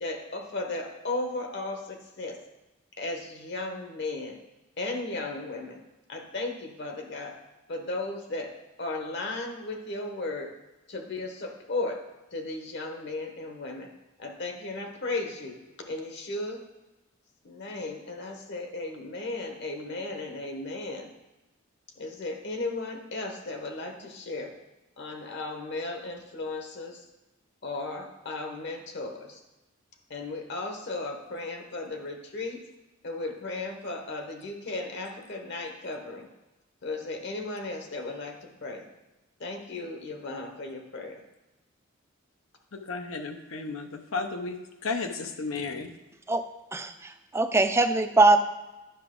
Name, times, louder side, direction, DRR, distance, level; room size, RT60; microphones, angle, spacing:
voice 1, 0.0-2.4 3.0-4.4 4.8-5.8 6.1-7.3 7.7-8.5 8.8-10.5 10.9-12.0 12.3-13.9 14.2-15.6 15.9-16.6 17.4-21.1 22.0-24.5 25.0-27.0 27.6-29.4 30.1-32.6 33.0-36.3 36.8-38.8 39.4-41.2, left 2 dB, 60° left, 3 dB, 1.1 m, -35 dB
voice 2, 42.7-44.6 44.8-45.9, left 4 dB, 90° left, 6 dB, 0.8 m, -33 dB
voice 3, 46.7-48.4, right 2 dB, 15° right, 8 dB, 0.4 m, -22 dB
10.0 x 5.9 x 3.8 m, 1.0 s
head